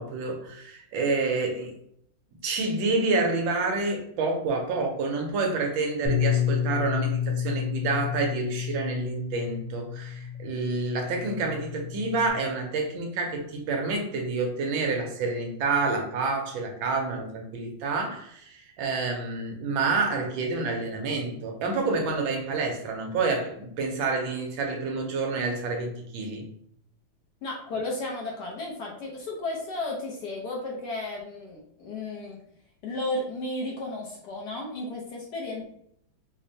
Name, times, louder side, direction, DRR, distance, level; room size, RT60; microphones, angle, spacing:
voice 1, 0.0-1.7 2.4-26.4, right 3 dB, 75° right, 2 dB, 1.4 m, -28 dB
Bass guitar, 6.0-12.3, left 9 dB, 90° left, 1.9 m, -30 dB
voice 2, 27.4-32.4 32.8-35.7, left 2 dB, 65° left, -2 dB, 1.1 m, -33 dB
4.9 x 2.1 x 2.7 m, 0.69 s
omnidirectional pair, 2.3 m